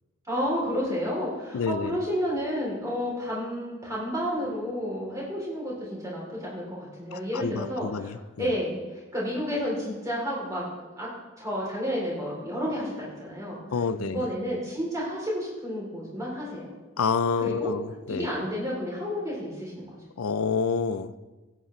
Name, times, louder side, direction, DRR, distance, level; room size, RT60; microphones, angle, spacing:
voice 1, 0.3-10.7 11.0-11.1 11.4-13.6 14.0-16.7 17.4-17.7 18.1-19.8, equal, 15° right, -5 dB, 3.2 m, -31 dB
voice 2, 1.5-2.0 7.1-8.5 13.7-14.3 17.0-18.3 20.2-21.2, left 5 dB, 80° left, 13 dB, 0.5 m, -28 dB
17.5 x 8.4 x 3.2 m, 1.2 s
head